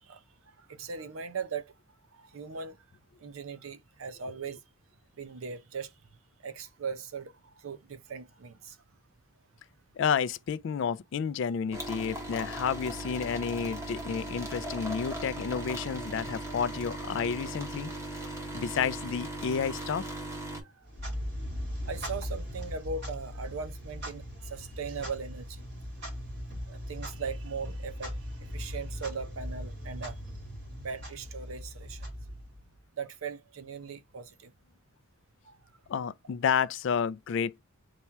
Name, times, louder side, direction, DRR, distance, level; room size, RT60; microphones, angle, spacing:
voice 1, 0.0-1.7 2.1-2.8 3.2-4.6 5.2-5.9 6.4-8.8 20.6-20.9 21.8-25.7 26.7-30.2 30.8-32.1 33.0-34.5 35.4-35.6, right 5 dB, 75° right, 0.6 m, -39 dB
voice 2, 10.0-17.9 18.5-20.1 35.9-37.6, left 7 dB, 60° left, 0.3 m, -30 dB
sound 1, 11.7-20.6, right 1 dB, 15° right, 1.1 m, -38 dB
Clock, 20.8-32.8, equal, 55° right, 2.3 m, -39 dB
4.2 x 2.3 x 4.4 m
head